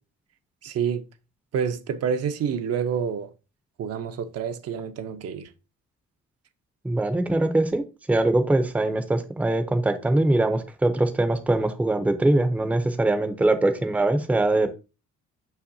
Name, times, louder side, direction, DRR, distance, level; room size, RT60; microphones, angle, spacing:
voice 1, 0.6-1.0 1.5-3.3 3.8-5.5, right 7 dB, 55° right, 0.6 m, -28 dB
voice 2, 6.8-14.7, right 2 dB, 5° right, 0.5 m, -22 dB
6.2 x 5.7 x 2.6 m
cardioid pair, 160°, 29 cm